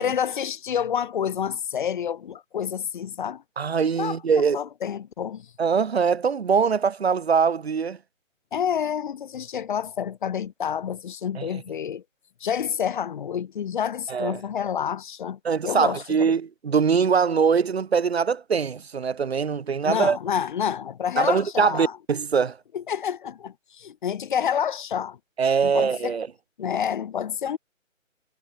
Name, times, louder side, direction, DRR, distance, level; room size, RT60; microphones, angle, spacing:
voice 1, 0.0-3.4 4.0-5.5 8.5-12.0 12.4-15.4 15.6-16.3 19.8-21.9 22.7-25.2 25.6-26.2 26.6-27.6, left 8 dB, 35° left, 5.6 m, -28 dB
voice 2, 3.6-4.6 5.6-8.0 11.3-11.5 14.1-14.4 15.4-20.2 21.2-22.6 25.4-26.3, right 6 dB, 50° right, 6.4 m, -22 dB
figure-of-eight pair, 155°, 40 cm